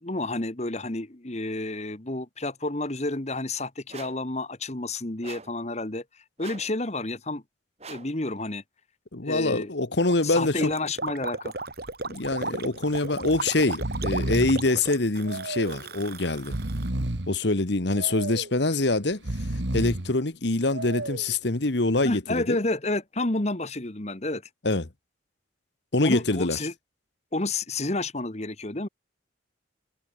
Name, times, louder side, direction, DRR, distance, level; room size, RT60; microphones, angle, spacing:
voice 1, 0.0-6.0 6.4-7.4 7.9-8.6 9.2-9.7 10.2-11.5 22.0-24.4 26.0-26.7 27.3-28.9, left 2 dB, 35° left, 1.4 m, -30 dB
sound 1, 3.9-4.3 5.2-5.6 6.4-6.8 7.8-8.2, right 5 dB, 35° right, 4.0 m, -44 dB
voice 2, 9.1-10.7 12.0-16.6 17.3-19.2 19.5-22.6 24.6-24.9 25.9-26.6, left 2 dB, 60° left, 1.4 m, -25 dB
Gurgling, 10.0-16.9, right 3 dB, 50° right, 3.4 m, -35 dB
Breathing, 11.6-11.9 12.2-12.3 13.2-13.4 13.7-14.7 15.3-15.9 16.4-17.4 18.0-18.6 19.1-20.1 20.7-21.3, right 1 dB, 65° right, 1.9 m, -31 dB
head